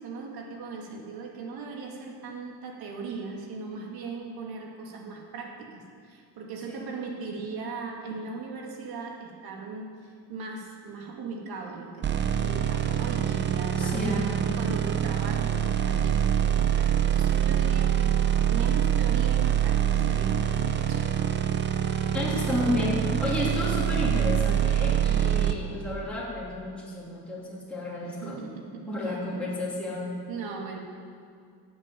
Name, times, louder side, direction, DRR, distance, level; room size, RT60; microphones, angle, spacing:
voice 1, 0.0-9.9 10.3-14.3 14.6-21.2 28.0-29.5 30.3-30.8, right 4 dB, 65° right, 1 dB, 2.4 m, -38 dB
sound 1, 12.0-25.5, right 9 dB, 30° right, 0.7 m, -25 dB
voice 2, 13.8-14.3 22.1-28.5 28.9-30.1, left 2 dB, 5° left, -7 dB, 2.7 m, -31 dB
12.5 x 7.7 x 9.3 m, 2.3 s
cardioid pair, 150°, 39 cm